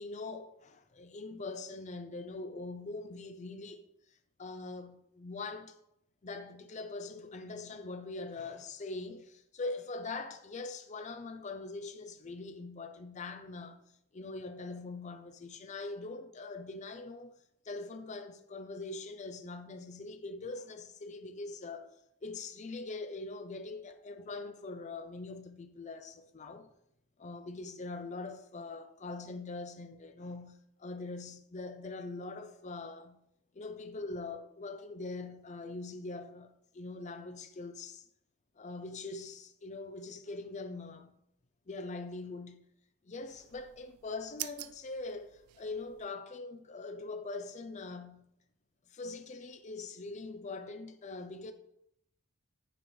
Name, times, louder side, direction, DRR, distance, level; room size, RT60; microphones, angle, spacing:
voice 1, 0.0-3.8 4.4-5.8 6.2-13.8 14.1-17.3 17.6-21.9 22.2-26.7 27.2-33.2 33.5-38.1 38.6-41.2 41.7-42.7 43.0-48.3 48.9-51.5, left 3 dB, 35° left, 0.5 m, -42 dB
sound 1, 43.3-46.1, right 16 dB, 85° right, 0.3 m, -47 dB
9.0 x 4.5 x 3.1 m
head